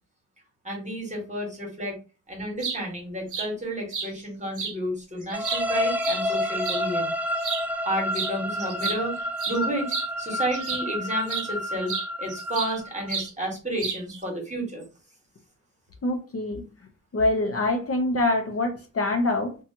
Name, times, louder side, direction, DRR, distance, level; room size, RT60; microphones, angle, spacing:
voice 1, 0.6-2.0 2.3-7.1 7.8-9.1 9.5-11.9 12.2-14.8, right 1 dB, 20° right, -1 dB, 1.3 m, -31 dB
sound 1, 2.4-2.8 3.3-3.5 3.9-4.1 4.6-4.7 5.2-6.8 7.4-7.7 8.1-8.3 8.6-10.9 11.3-11.5 11.9-12.8 13.1-13.3 13.8-14.2, right 5 dB, 65° right, 0.6 m, -32 dB
sound 2, 5.3-13.1, left 1 dB, 5° right, 0.3 m, -29 dB
voice 2, 16.0-16.6 17.1-19.6, left 2 dB, 45° left, 4 dB, 0.6 m, -25 dB
2.7 x 2.3 x 2.7 m, 0.32 s
wide cardioid pair, 85°, 33 cm